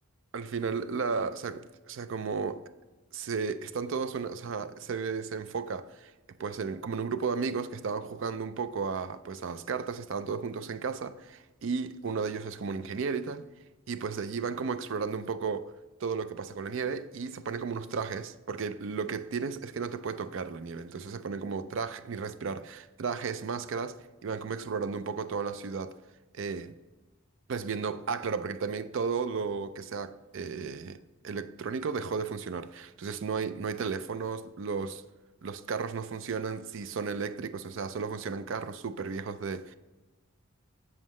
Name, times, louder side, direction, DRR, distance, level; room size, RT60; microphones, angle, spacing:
voice 1, 0.3-2.6 3.1-6.1 6.4-13.4 13.9-15.7 16.0-26.0 26.3-26.8 27.5-35.0 35.4-39.7, right 5 dB, 60° right, 0.4 m, -34 dB
7.6 x 7.3 x 3.1 m
head